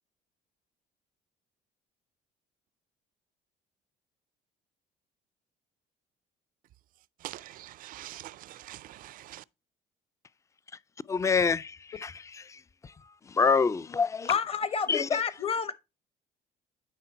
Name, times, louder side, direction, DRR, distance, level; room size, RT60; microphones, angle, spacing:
voice 1, 7.2-9.4, right 15 dB, 55° right, 0.4 m, -44 dB
voice 2, 11.1-12.6 13.3-14.3 14.9-15.1, left 5 dB, 20° left, 0.4 m, -26 dB
voice 3, 14.3-15.7, left 6 dB, 35° left, 1.1 m, -29 dB
9.7 x 4.0 x 4.4 m
supercardioid pair, 80°, 17 cm